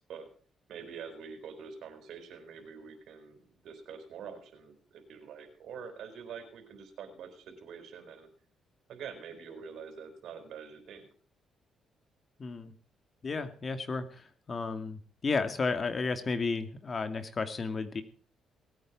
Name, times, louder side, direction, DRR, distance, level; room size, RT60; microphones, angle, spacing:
voice 1, 0.7-8.3 8.9-11.1, right 6 dB, 75° right, 7 dB, 4.4 m, -45 dB
voice 2, 12.4-12.7 13.2-18.0, left 4 dB, 40° left, 9 dB, 2.3 m, -33 dB
19.5 x 9.2 x 6.1 m, 0.43 s
cardioid pair, 90°, 0 cm